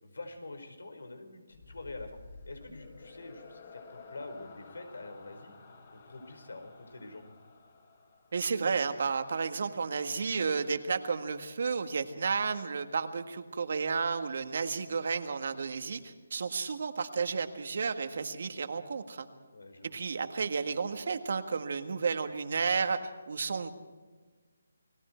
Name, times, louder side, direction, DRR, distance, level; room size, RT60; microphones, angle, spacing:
voice 1, 0.0-2.2 2.4-5.5 5.9-7.2 19.5-20.0, left 2 dB, 85° left, 7 dB, 4.7 m, -46 dB
sound 1, 1.5-8.9, left 3 dB, 40° left, 5.3 m, -52 dB
voice 2, 8.3-19.3 19.8-23.7, right 5 dB, 55° right, 8 dB, 1.7 m, -32 dB
30.0 x 19.5 x 4.6 m, 1.4 s
hypercardioid pair, 165°, 0 cm